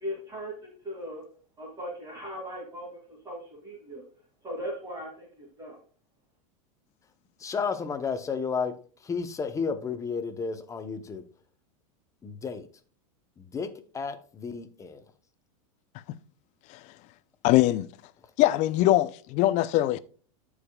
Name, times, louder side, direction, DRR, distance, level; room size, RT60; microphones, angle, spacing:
voice 1, 0.0-1.2 1.6-2.9 3.2-4.0 4.4-5.8, equal, 20° right, 2.4 m, -38 dB
voice 2, 7.4-8.7 9.0-11.2 12.2-12.7 13.4-13.7 13.9-15.0, left 5 dB, 20° left, 0.9 m, -32 dB
voice 3, 17.4-17.9 18.4-20.0, left 15 dB, 45° left, 0.5 m, -22 dB
14.0 x 4.9 x 2.3 m
supercardioid pair, 135°, 17 cm